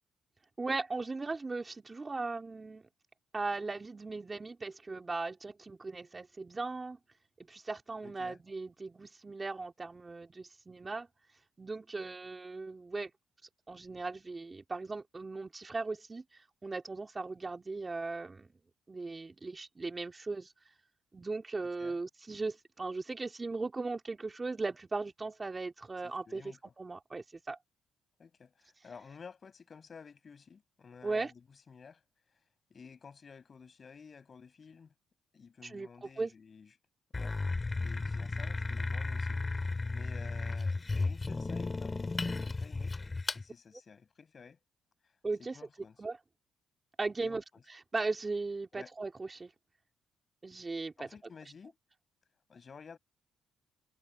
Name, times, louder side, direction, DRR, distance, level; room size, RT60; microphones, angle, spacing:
voice 1, 0.6-2.9 3.3-7.0 7.4-11.1 11.6-13.1 13.7-18.5 18.9-20.5 21.1-27.6 31.0-31.3 35.6-36.3 45.2-45.6 46.0-46.2 47.0-49.5 50.4-51.1, right 3 dB, 25° right, 3.1 m, -38 dB
voice 2, 8.0-8.4 21.8-22.0 26.0-26.7 28.2-31.4 31.7-32.0 32.7-34.9 35.3-36.7 37.1-37.4 37.8-43.0 43.3-44.6 45.5-45.9 47.2-47.4 48.7-48.9 51.0-51.8 52.5-53.0, left 5 dB, 40° left, 7.3 m, -53 dB
sound 1, 37.1-43.4, left 3 dB, 25° left, 4.3 m, -34 dB
cardioid pair, 90°, 0 cm